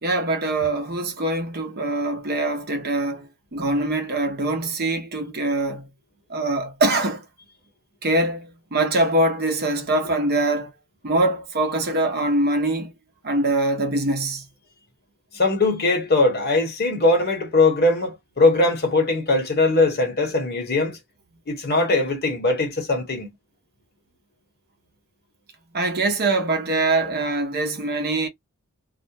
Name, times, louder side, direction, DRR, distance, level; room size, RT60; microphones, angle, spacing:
voice 1, 0.0-5.9 6.3-7.2 8.0-10.7 11.0-12.9 13.2-14.4 25.7-28.3, right 2 dB, 45° right, 0.8 m, -23 dB
voice 2, 15.3-21.0 21.5-23.3, left 2 dB, 45° left, 1.1 m, -20 dB
2.4 x 2.1 x 2.8 m
head